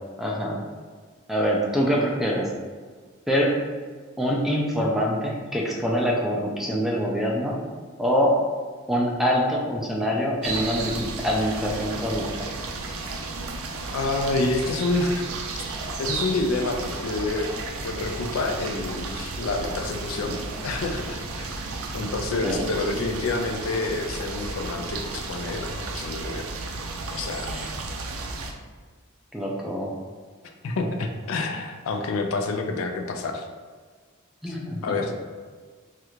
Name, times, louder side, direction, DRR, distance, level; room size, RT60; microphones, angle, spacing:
voice 1, 0.2-0.6 1.3-2.5 3.3-3.6 4.2-7.6 8.0-8.4 8.9-12.5 22.4-22.6 27.4-27.7 29.3-29.9 34.4-34.8, equal, ahead, -2 dB, 0.4 m, -25 dB
sound 1, 10.4-28.5, right 3 dB, 80° right, 0.4 m, -33 dB
voice 2, 13.9-15.3 16.0-17.5 17.8-21.5 21.9-26.5 27.1-27.6 30.6-33.5 34.5-34.6 34.8-35.1, left 3 dB, 80° left, 4 dB, 0.4 m, -28 dB
3.2 x 2.4 x 3.0 m, 1.5 s
head